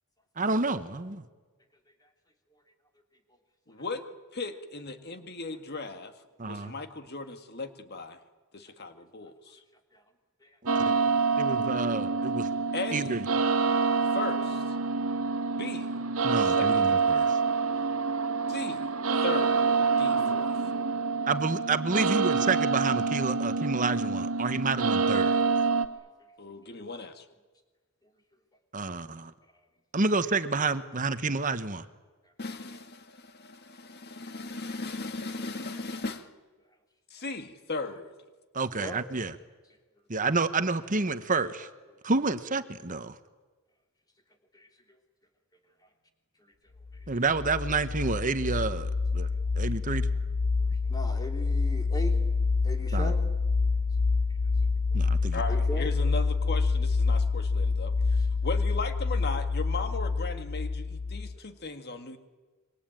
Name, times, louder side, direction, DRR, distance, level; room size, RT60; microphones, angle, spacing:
voice 1, 0.4-1.2 6.4-6.7 10.8-10.9 11.4-12.5 12.9-13.2 16.2-17.4 21.3-25.4 28.7-29.3 29.9-31.8 38.5-39.3 40.1-41.7 42.0-43.1 47.1-49.3 49.6-50.1 52.9-53.1 54.9-55.4, right 3 dB, 35° right, 11 dB, 1.1 m, -29 dB
voice 2, 3.7-4.0 4.3-6.1 6.4-8.2 8.5-9.6 12.7-13.2 14.1-14.8 15.6-15.9 16.4-16.9 18.5-18.9 19.2-19.6 20.0-20.5 26.4-27.3 32.4-32.9 33.4-36.3 37.1-38.1 55.3-62.2, left 3 dB, 45° left, 8 dB, 1.9 m, -37 dB
voice 3, 10.4-10.8 11.2-11.4 20.1-20.5 38.7-39.0 44.5-44.7 46.4-46.5 49.3-49.4 50.6-52.2 52.6-53.3 54.4-54.5 54.9-55.0 55.5-55.9, equal, 15° left, 4 dB, 3.2 m, -40 dB
sound 1, 10.7-25.9, right 4 dB, 70° right, 1.6 m, -27 dB
sound 2, 46.9-61.4, left 4 dB, 75° left, 1.1 m, -27 dB
26.5 x 24.0 x 9.1 m, 1.3 s
head